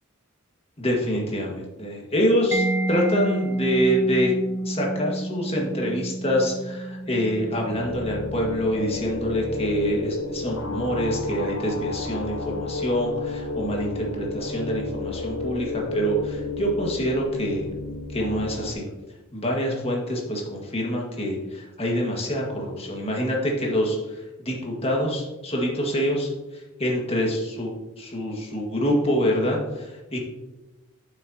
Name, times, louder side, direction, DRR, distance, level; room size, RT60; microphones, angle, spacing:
voice 1, 0.8-4.3 4.6-17.7 18.1-18.9 19.3-26.3 26.8-27.7 28.0-30.2, equal, 25° left, -1 dB, 1.7 m, -26 dB
Mallet percussion, 2.5-10.0, right 2 dB, 10° right, 0.5 m, -30 dB
sound 1, 7.3-18.7, left 3 dB, 65° left, 0.9 m, -32 dB
9.6 x 7.0 x 2.8 m, 1.1 s
head